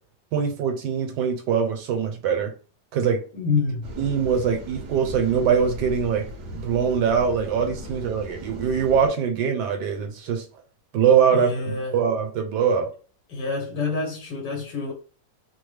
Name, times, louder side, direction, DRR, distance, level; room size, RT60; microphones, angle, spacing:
voice 1, 0.3-2.5 2.9-3.2 4.0-6.3 6.5-10.4 10.9-12.9, right 7 dB, 75° right, 1.2 m, -22 dB
voice 2, 3.3-3.9 11.3-12.0 13.3-14.9, left 4 dB, 80° left, 1.6 m, -27 dB
sound 1, 3.8-9.1, equal, 60° right, 0.8 m, -37 dB
3.3 x 2.0 x 3.2 m
omnidirectional pair, 1.9 m